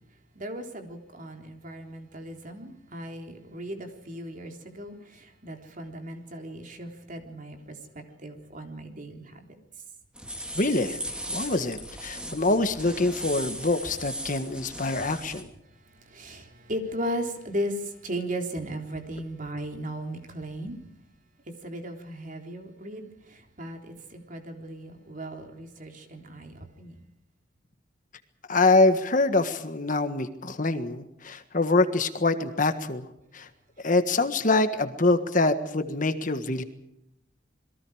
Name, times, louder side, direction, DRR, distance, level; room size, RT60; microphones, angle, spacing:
voice 1, 0.4-9.5 15.9-20.8 21.6-26.9, equal, 40° right, 4 dB, 3.6 m, -37 dB
sound 1, 10.2-15.4, equal, 5° right, 3.0 m, -37 dB
voice 2, 10.5-11.0 11.3-15.5 28.5-33.0 33.3-33.5 33.8-36.6, left 2 dB, 40° left, 9 dB, 1.6 m, -25 dB
28.0 x 22.5 x 5.0 m, 0.83 s
head